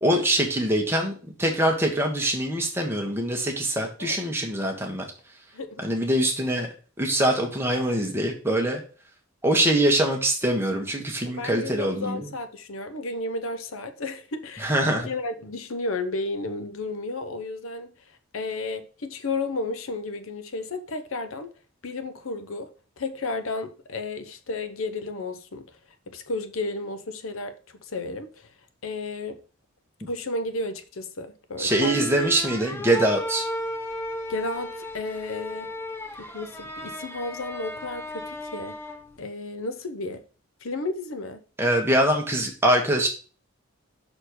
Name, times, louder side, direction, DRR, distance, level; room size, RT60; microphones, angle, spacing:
voice 1, 0.0-5.0 5.8-6.7 7.0-8.8 9.4-12.3 14.6-15.1 31.6-33.5 41.6-43.1, right 1 dB, 10° right, 1.3 m, -23 dB
voice 2, 5.5-5.8 11.3-14.8 15.0-17.9 18.3-21.5 21.8-22.7 23.0-25.8 26.1-28.5 28.8-29.4 30.1-32.1 34.3-35.7 36.2-38.8 39.2-40.2 40.6-41.4, left 2 dB, 75° left, 0.8 m, -33 dB
sound 1, 31.7-39.2, left 1 dB, 10° left, 0.7 m, -35 dB
6.0 x 4.4 x 6.4 m
head